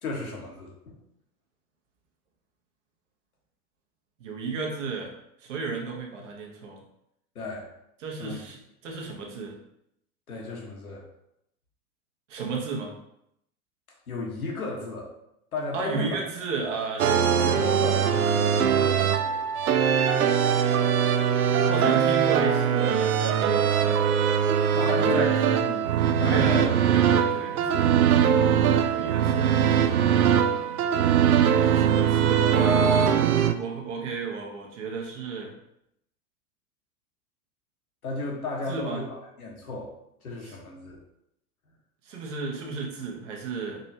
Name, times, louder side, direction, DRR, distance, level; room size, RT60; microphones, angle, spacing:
voice 1, 0.0-0.9 7.3-7.7 8.2-8.4 10.3-11.0 14.1-15.1 15.5-16.2 16.6-16.7 17.4-19.5 24.7-25.9 26.2-26.7 38.0-39.9 40.2-41.0, left 3 dB, 70° left, -1 dB, 1.3 m, -34 dB
voice 2, 4.2-5.1 5.4-6.8 8.0-9.5 12.3-12.9 15.7-17.4 21.6-24.0 24.7-25.3 26.2-28.0 28.7-29.6 31.6-35.5 38.7-39.0 40.5-40.6 42.1-43.8, right 3 dB, 55° right, 0 dB, 1.2 m, -32 dB
sound 1, 17.0-33.5, right 8 dB, 70° right, 0.5 m, -22 dB
5.2 x 3.0 x 2.8 m, 0.79 s
figure-of-eight pair, 90°, 45 cm